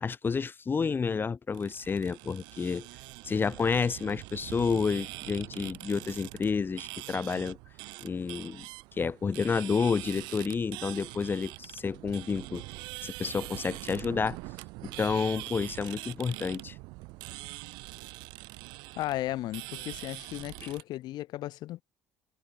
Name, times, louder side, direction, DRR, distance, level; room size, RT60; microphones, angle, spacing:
voice 1, 0.0-2.9 3.2-7.6 8.0-8.7 9.0-12.6 13.0-14.4 14.8-16.8, left 5 dB, 25° left, 0.4 m, -30 dB
sound 1, 1.5-20.8, right 24 dB, 65° right, 0.5 m, -43 dB
voice 2, 19.0-21.8, left 15 dB, 60° left, 1.1 m, -35 dB
hypercardioid pair, 60°, 8 cm